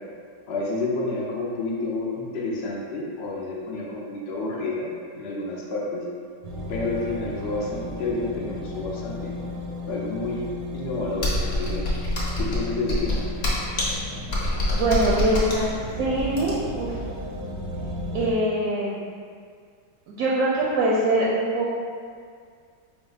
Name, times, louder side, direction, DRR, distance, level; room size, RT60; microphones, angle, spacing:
voice 1, 0.5-6.0 6.7-9.3 9.9-11.8 12.3-13.3, left 2 dB, 75° left, -4 dB, 0.5 m, -29 dB
sound 1, 6.4-18.3, left 2 dB, 85° right, 1.4 m, -35 dB
Computer keyboard, 11.2-16.8, left 1 dB, 45° left, 0.9 m, -26 dB
voice 2, 14.6-15.7 16.0-17.0 18.1-19.0 20.1-21.7, right 1 dB, 70° right, -5 dB, 1.0 m, -23 dB
5.0 x 2.0 x 3.8 m, 2.1 s
omnidirectional pair, 1.9 m